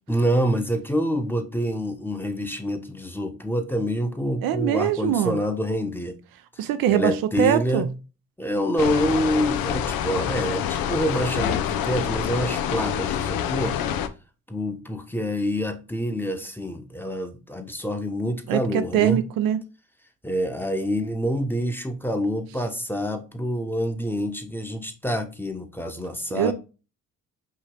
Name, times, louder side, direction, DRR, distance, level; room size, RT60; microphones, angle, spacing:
voice 1, 0.1-6.2 6.6-7.9 8.4-13.8 14.5-19.2 20.2-26.5, equal, 5° left, 1.0 m, -27 dB
voice 2, 4.4-5.4 6.6-7.9 18.5-19.6 26.3-26.5, right 10 dB, 75° right, 0.6 m, -22 dB
sound 1, 8.8-14.1, left 9 dB, 75° left, 0.6 m, -26 dB
5.7 x 2.7 x 3.3 m
supercardioid pair, 55°, 35 cm